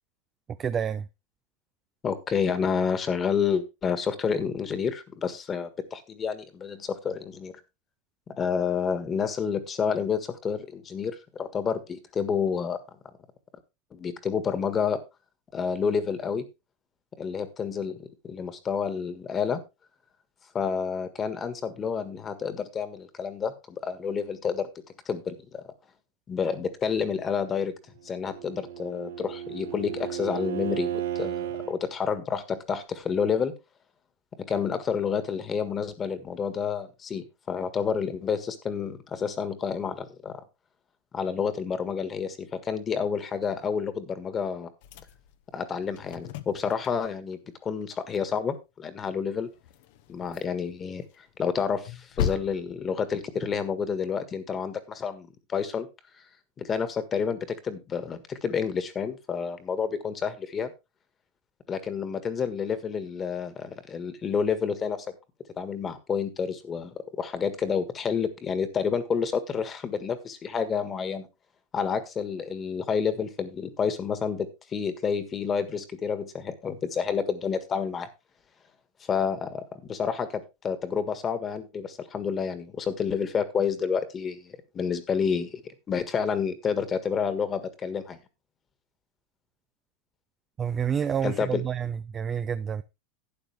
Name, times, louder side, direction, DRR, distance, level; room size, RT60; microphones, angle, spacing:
voice 1, 0.6-1.1 90.6-92.8, right 7 dB, 25° right, 0.5 m, -28 dB
voice 2, 2.0-7.6 8.3-12.8 13.9-15.0 15.5-16.5 17.2-19.6 20.5-24.7 25.0-25.6 26.3-27.7 28.0-33.5 34.3-40.4 41.1-44.7 45.5-49.5 50.1-55.9 56.6-60.7 61.7-65.1 65.6-71.3 71.7-78.1 79.0-85.6 85.9-88.2 91.2-91.6, left 6 dB, 25° left, 1.6 m, -29 dB
Bowed string instrument, 28.1-31.8, right 11 dB, 90° right, 1.2 m, -34 dB
sound 1, 44.8-47.3 47.6-47.9 48.1-48.2 48.5-48.6 49.3-50.7 51.1-53.5, left 9 dB, 65° left, 1.0 m, -37 dB
12.0 x 8.8 x 3.4 m
supercardioid pair, 140°, 0 cm